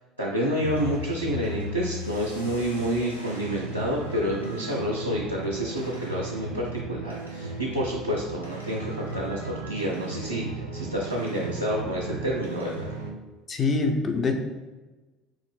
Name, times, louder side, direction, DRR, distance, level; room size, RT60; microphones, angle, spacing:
voice 1, 0.2-10.4 10.7-12.9, equal, 85° right, -5 dB, 0.4 m, -29 dB
sound 1, 0.6-13.1, right 1 dB, 90° left, 0.4 m, -35 dB
voice 2, 13.5-14.3, left 3 dB, 30° left, 4 dB, 0.5 m, -24 dB
3.7 x 2.5 x 3.4 m, 1.2 s
figure-of-eight pair, 65°, 0 cm